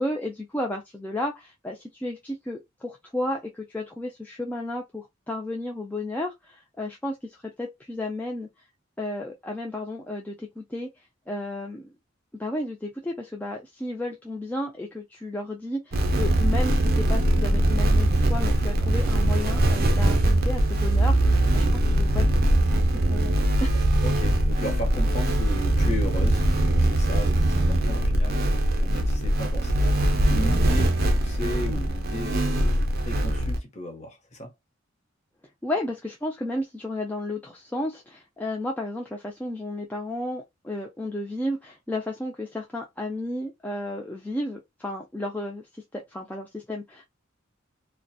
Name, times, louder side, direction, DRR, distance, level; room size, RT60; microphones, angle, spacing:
voice 1, 0.0-8.5 9.0-10.9 11.3-11.9 12.4-22.3 23.1-23.3 23.6-23.7 35.6-45.7 45.9-47.0, left 1 dB, 10° left, 0.3 m, -33 dB
sound 1, 15.9-33.6, right 1 dB, 50° right, 0.5 m, -22 dB
voice 2, 24.0-34.5, left 1 dB, 35° left, 0.8 m, -36 dB
2.6 x 2.1 x 2.3 m
head